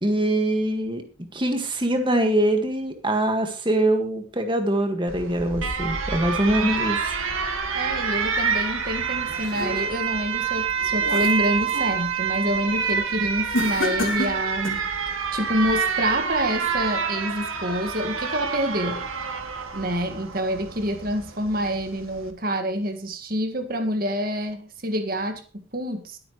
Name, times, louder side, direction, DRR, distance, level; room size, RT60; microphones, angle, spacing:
voice 1, 0.0-7.0, right 1 dB, 25° right, 6 dB, 1.8 m, -23 dB
Alarm, 5.1-22.3, right 6 dB, 80° right, 2.0 m, -27 dB
voice 2, 7.7-19.1 19.7-26.2, equal, 45° right, 6 dB, 1.9 m, -27 dB
sound 1, 9.0-10.1 10.6-12.0 12.3-12.7 13.5-14.9, left 1 dB, 70° left, 2.6 m, -31 dB
22.0 x 8.7 x 3.2 m, 0.34 s
head